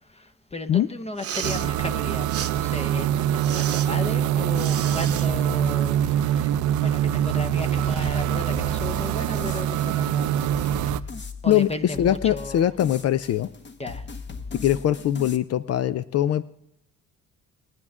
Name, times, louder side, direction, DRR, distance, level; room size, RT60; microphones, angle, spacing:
voice 1, 0.1-6.5 6.8-10.4 11.4-12.7 13.8-14.0, left 2 dB, 20° left, 9 dB, 0.7 m, -35 dB
Respiratory sounds, 1.1-1.7 2.3-2.5 3.4-3.9 4.5-5.3, right 9 dB, 50° right, 0.9 m, -33 dB
sound 1, 1.4-11.0, right 10 dB, 75° right, 0.5 m, -24 dB
sound 2, 8.5-15.4, left 4 dB, 35° left, 1.1 m, -39 dB
voice 2, 11.5-13.5 14.5-16.5, left 11 dB, 55° left, 14 dB, 0.5 m, -22 dB
21.0 x 9.2 x 3.6 m, 0.80 s
cardioid pair, 90°, 30 cm